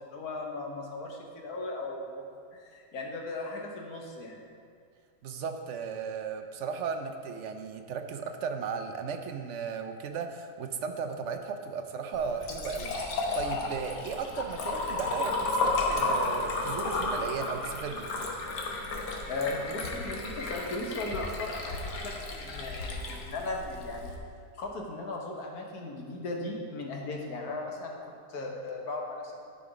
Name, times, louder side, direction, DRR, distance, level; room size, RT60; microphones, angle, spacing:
voice 1, 0.1-2.2 2.5-4.4 19.3-24.2 24.6-29.5, left 2 dB, 70° left, 0 dB, 1.6 m, -37 dB
voice 2, 5.2-13.0 13.3-18.1, right 6 dB, 65° right, 6 dB, 0.8 m, -35 dB
Liquid, 12.1-24.2, left 2 dB, 90° left, 1.6 m, -33 dB
11.0 x 5.1 x 5.0 m, 2.2 s
omnidirectional pair, 1.7 m